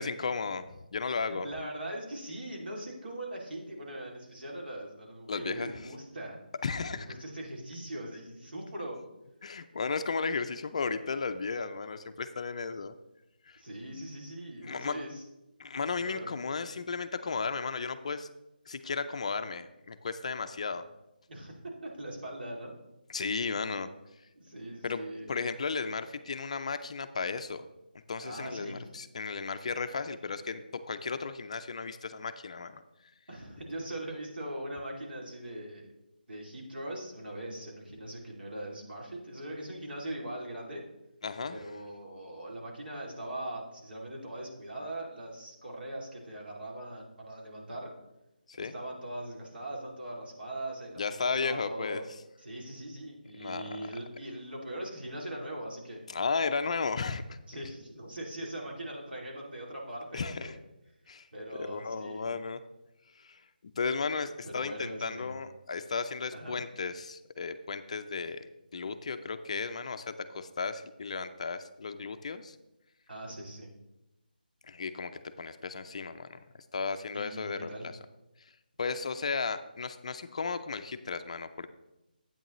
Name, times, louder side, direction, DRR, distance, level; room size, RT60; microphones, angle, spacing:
voice 1, 0.0-1.5 5.3-5.7 6.6-7.1 9.4-12.9 13.5-13.6 14.6-14.9 15.6-18.3 18.7-20.9 23.1-23.9 24.8-25.0 25.3-27.7 28.1-32.8 41.2-41.6 48.5-48.7 51.0-52.0 53.4-53.9 56.1-57.4 60.1-60.5 61.1-61.3 61.7-62.6 63.2-63.4 63.8-68.5 68.7-72.6 74.6-75.1 75.4-76.4 76.7-77.9 78.8-81.7, left 4 dB, 40° left, 10 dB, 0.4 m, -34 dB
voice 2, 1.3-6.4 6.9-9.0 13.6-15.2 16.0-16.4 21.3-22.7 23.4-23.5 24.4-25.3 28.2-28.8 33.3-35.9 36.3-40.8 41.5-47.9 48.6-52.0 52.4-56.0 57.5-60.5 61.3-62.4 64.5-65.4 66.3-66.6 73.1-73.7 77.1-77.9, right 1 dB, 70° right, -1 dB, 2.5 m, -41 dB
8.8 x 8.6 x 3.0 m, 0.95 s
figure-of-eight pair, 170°, 5 cm